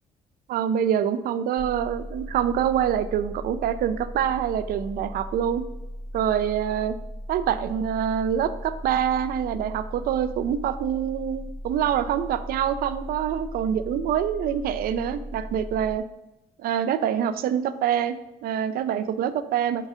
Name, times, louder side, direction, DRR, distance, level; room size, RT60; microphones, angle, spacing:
voice 1, 0.5-5.6 6.1-6.9 7.3-16.0 16.6-18.2 18.4-19.9, right 9 dB, 60° right, 12 dB, 0.4 m, -25 dB
sound 1, 1.6-16.0, equal, 25° left, 0.8 m, -38 dB
5.3 x 3.8 x 4.8 m, 0.97 s
cardioid pair, 110°, 17 cm